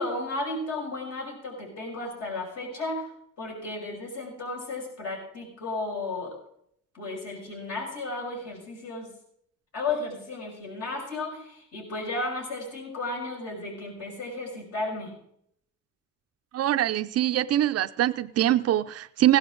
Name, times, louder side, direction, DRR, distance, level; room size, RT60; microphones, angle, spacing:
voice 1, 0.0-3.1 3.4-6.3 6.9-9.1 9.7-15.1, left 2 dB, 55° left, -1 dB, 6.2 m, -34 dB
voice 2, 16.5-19.4, right 12 dB, 55° right, 12 dB, 0.5 m, -23 dB
16.0 x 11.5 x 3.8 m, 0.70 s
cardioid pair, 105°, 29 cm